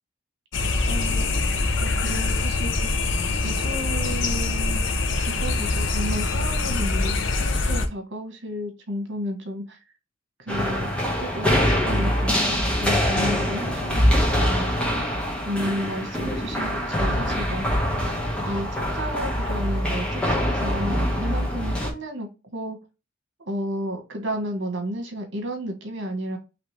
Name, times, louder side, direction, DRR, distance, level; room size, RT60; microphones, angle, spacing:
sound 1, 0.5-7.9, left 3 dB, 60° left, 0.7 m, -24 dB
voice 1, 0.9-1.4 1.8-2.9 3.2-4.8 5.2-9.8 10.5-10.9 11.2-14.7 15.4-17.6 18.4-22.8 23.4-26.4, equal, 60° right, 4 dB, 1.4 m, -32 dB
sound 2, 10.5-21.9, equal, 5° left, 1.2 m, -24 dB
4.9 x 3.2 x 3.3 m, 0.28 s
head